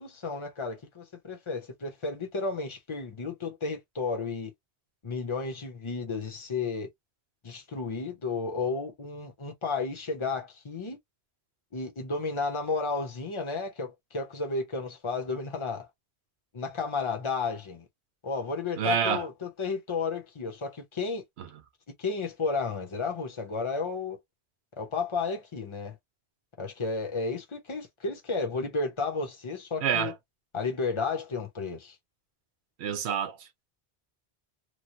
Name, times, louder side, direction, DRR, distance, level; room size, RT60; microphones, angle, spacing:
voice 1, 0.0-4.5 5.0-6.9 7.4-11.0 11.7-15.9 16.5-17.8 18.2-21.2 22.0-24.2 24.8-26.0 26.6-30.1 30.5-31.9, left 4 dB, 30° left, 0.9 m, -32 dB
voice 2, 18.8-19.3 21.4-21.5 29.8-30.1 32.8-33.5, right 8 dB, 80° right, 1.0 m, -28 dB
3.2 x 2.2 x 2.8 m
omnidirectional pair, 1.1 m